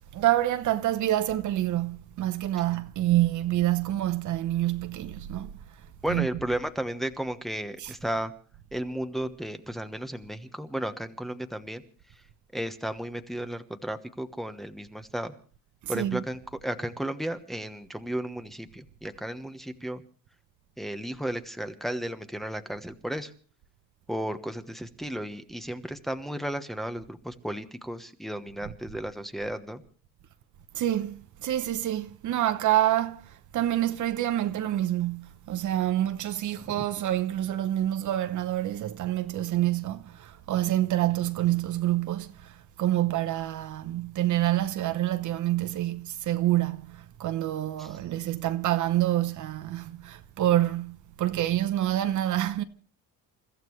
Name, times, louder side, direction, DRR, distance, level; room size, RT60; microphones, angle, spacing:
voice 1, 0.1-5.6 6.0-6.4 7.8-7.9 15.8-16.3 28.6-28.7 30.7-52.6, right 13 dB, 55° right, 1.0 m, -27 dB
voice 2, 6.0-8.3 8.7-11.8 12.5-15.3 15.9-20.0 20.8-23.3 24.1-29.8 36.7-36.8 47.8-47.9, right 1 dB, ahead, 1.1 m, -34 dB
29.0 x 14.5 x 3.2 m
cardioid pair, 140°, 35 cm